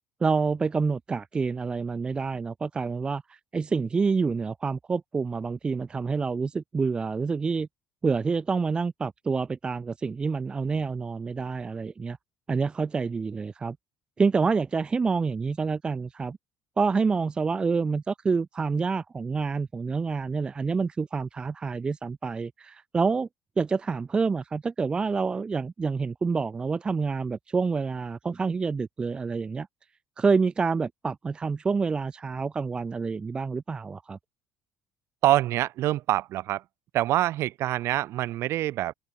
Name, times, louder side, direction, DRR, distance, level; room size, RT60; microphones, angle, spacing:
voice 1, 0.2-7.7 8.0-12.2 12.5-13.8 14.2-16.4 16.8-23.3 23.6-29.7 30.2-34.2, right 4 dB, 15° right, 0.5 m, -27 dB
voice 2, 35.2-36.6 36.9-38.9, right 14 dB, 50° right, 1.8 m, -25 dB
cardioid pair, 170°, 6 cm